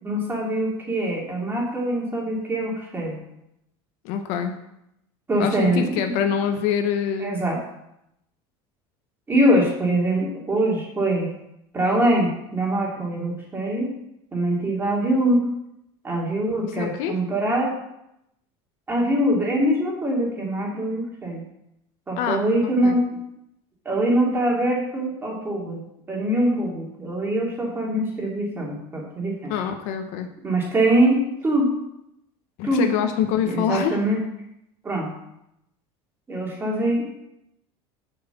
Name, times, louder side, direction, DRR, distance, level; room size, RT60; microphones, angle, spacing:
voice 1, 0.0-3.2 5.3-6.2 7.2-7.6 9.3-11.3 11.7-13.9 14.3-15.4 16.0-17.7 18.9-21.4 22.1-23.0 23.8-25.8 26.1-29.5 30.4-31.7 32.6-32.9 33.4-34.2 34.8-35.1 36.3-37.2, right 1 dB, 15° right, -2 dB, 2.9 m, -23 dB
voice 2, 4.0-4.6 5.4-7.4 16.8-17.1 22.2-22.4 22.8-23.0 29.5-30.3 32.6-34.0, left 8 dB, 65° left, 6 dB, 1.1 m, -25 dB
7.6 x 5.8 x 7.2 m, 0.82 s
cardioid pair, 145°, 13 cm